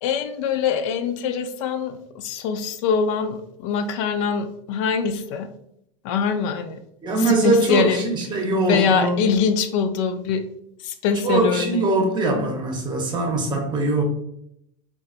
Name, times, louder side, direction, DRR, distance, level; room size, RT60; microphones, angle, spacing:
voice 1, 0.0-5.5 6.0-6.8 7.2-8.1 8.7-10.4 10.8-11.9, left 6 dB, 65° left, 8 dB, 0.4 m, -23 dB
voice 2, 7.0-9.3 11.2-14.0, right 2 dB, 25° right, 2 dB, 0.8 m, -22 dB
3.8 x 2.3 x 2.4 m, 0.74 s
supercardioid pair, 125°, 17 cm